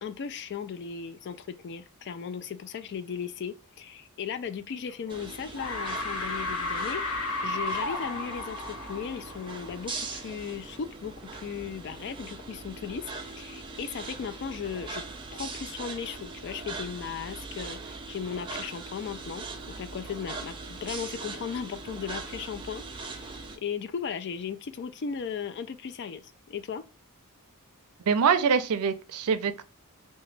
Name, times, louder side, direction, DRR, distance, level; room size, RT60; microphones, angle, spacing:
voice 1, 0.0-15.0 15.3-26.8, left 7 dB, 50° left, 0.3 m, -37 dB
sound 1, 4.9-5.3 5.6-10.1, left 2 dB, 90° left, 0.7 m, -34 dB
sound 2, 5.1-23.6, right 3 dB, 20° right, 0.5 m, -41 dB
voice 2, 28.1-29.6, right 6 dB, 85° right, 0.4 m, -24 dB
2.8 x 2.2 x 3.1 m
head